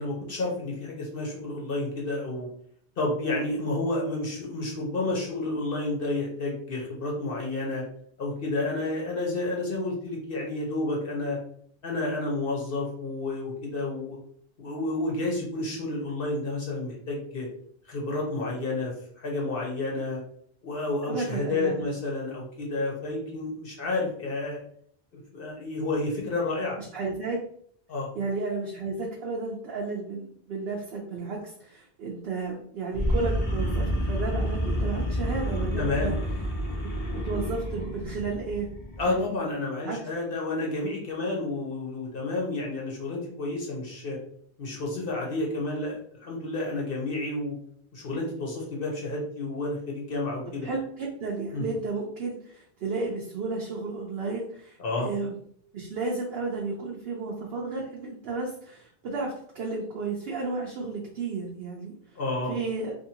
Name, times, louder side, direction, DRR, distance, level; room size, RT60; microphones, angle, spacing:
voice 1, 0.0-2.5 3.0-7.8 8.2-11.4 11.8-14.2 14.6-17.5 17.9-20.2 20.6-24.6 25.3-26.8 27.9-28.1 35.8-36.1 39.0-44.2 44.6-47.5 47.9-50.7 51.5-51.6 54.8-55.1 62.2-62.5, left 2 dB, 60° left, -2 dB, 0.9 m, -30 dB
voice 2, 21.1-21.9 26.9-27.4 28.2-36.2 37.1-38.7 39.1-39.3 39.8-40.0 50.6-55.4 55.7-62.2 62.5-62.9, right 3 dB, 70° right, -2 dB, 0.8 m, -33 dB
sound 1, 32.9-39.2, equal, 35° left, 0.6 m, -29 dB
2.8 x 2.6 x 2.8 m, 0.63 s
omnidirectional pair, 1.1 m